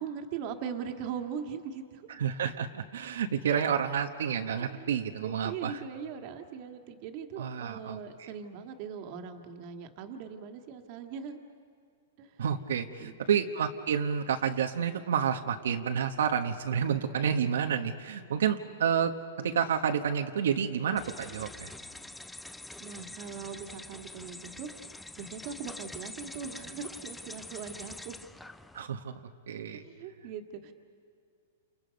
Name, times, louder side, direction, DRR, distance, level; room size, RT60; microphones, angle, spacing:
voice 1, 0.0-2.1 3.5-3.8 4.6-4.9 5.2-11.4 12.2-12.4 13.0-13.5 22.8-24.7 25.2-28.2 29.7-30.7, right 7 dB, 40° right, 5 dB, 1.8 m, -40 dB
voice 2, 2.2-5.8 7.4-8.3 12.4-19.1 19.4-21.7 28.7-29.8, right 7 dB, 85° right, 6 dB, 1.2 m, -30 dB
sound 1, 21.0-28.9, left 2 dB, 5° left, 0.5 m, -45 dB
29.0 x 29.0 x 5.3 m, 2.3 s
hypercardioid pair, 155°, 0 cm